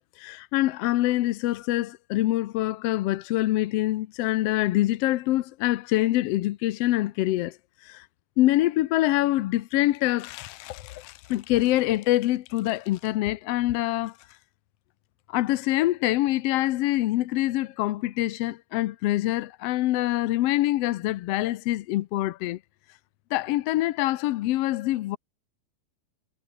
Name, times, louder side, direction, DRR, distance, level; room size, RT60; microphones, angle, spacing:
voice 1, 0.0-7.6 7.8-8.1 8.4-14.2 15.3-22.6 23.3-25.2, left 16 dB, 75° left, 1.5 m, -25 dB
omnidirectional pair, 3.5 m